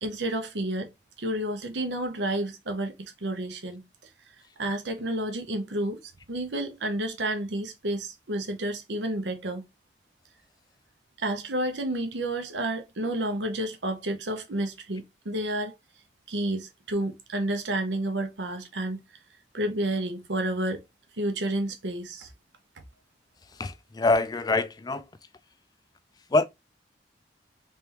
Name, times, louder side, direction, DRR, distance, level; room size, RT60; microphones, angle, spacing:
voice 1, 0.0-0.9 1.2-3.8 4.6-6.0 6.3-9.6 11.2-15.7 16.3-19.0 19.5-20.8 21.2-22.3, right 1 dB, 80° right, 0.8 m, -30 dB
voice 2, 23.6-25.1 26.3-26.4, left 3 dB, 20° left, 0.3 m, -24 dB
3.4 x 3.3 x 2.9 m
head